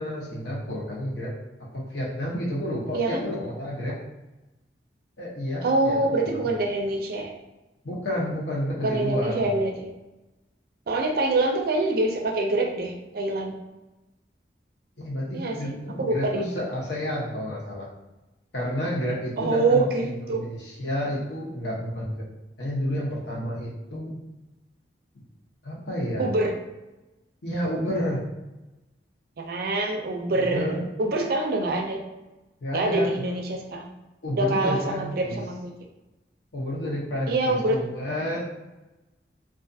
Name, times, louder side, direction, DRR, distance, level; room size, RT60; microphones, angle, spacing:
voice 1, 0.0-1.3 1.6-4.0 5.2-6.5 7.8-9.4 15.0-17.9 18.5-22.2 22.6-24.2 25.1-25.2 25.6-26.3 27.4-28.3 30.3-30.9 32.6-33.4 34.2-35.4 36.5-38.4, equal, 75° left, -5 dB, 0.8 m, -30 dB
voice 2, 2.9-3.3 5.6-7.3 8.8-9.9 10.9-13.5 15.3-15.7 16.0-16.4 19.4-20.4 26.2-26.5 29.4-30.7 31.0-32.0 32.7-33.9 34.3-35.7 37.3-37.8, right 2 dB, 55° right, 2 dB, 0.4 m, -25 dB
2.4 x 2.3 x 2.6 m, 1.0 s
head